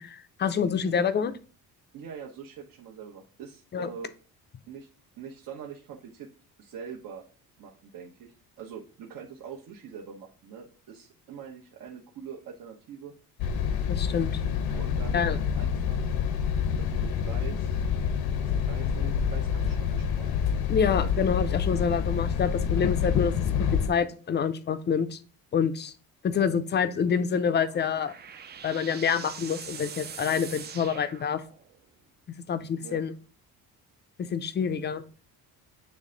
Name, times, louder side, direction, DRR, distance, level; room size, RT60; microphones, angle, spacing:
voice 1, 0.0-1.3 3.7-3.9 13.9-14.3 15.1-15.4 20.7-23.3 23.6-25.2 25.5-25.9 26.2-28.1 28.6-31.4 32.5-33.1 34.2-35.0, left 7 dB, 30° left, 11 dB, 0.5 m, -27 dB
voice 2, 1.9-4.1 4.7-4.9 5.2-6.3 6.6-7.3 7.6-13.1 14.8-15.3 15.6-16.0 16.8-17.8 18.3-20.3 32.8-33.0, right 7 dB, 65° right, -2 dB, 1.0 m, -43 dB
sound 1, 13.4-23.9, left 7 dB, 75° left, 0.8 m, -27 dB
sound 2, 27.3-31.8, right 7 dB, 30° right, 0.4 m, -43 dB
8.3 x 3.3 x 3.8 m, 0.38 s
cardioid pair, 150°, 36 cm